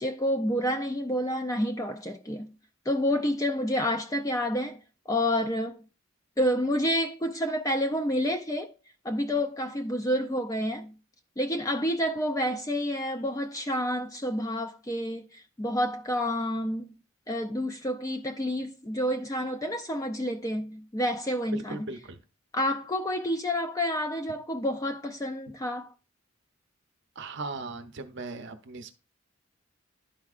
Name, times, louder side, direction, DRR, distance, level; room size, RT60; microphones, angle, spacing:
voice 1, 0.0-2.5 2.9-4.8 5.1-5.8 6.4-8.7 9.0-10.9 11.4-16.9 17.3-21.9 22.5-25.9, equal, 15° left, 0.4 m, -29 dB
voice 2, 21.5-22.2 27.2-29.0, right 3 dB, 55° right, 0.7 m, -38 dB
11.5 x 4.5 x 2.4 m
head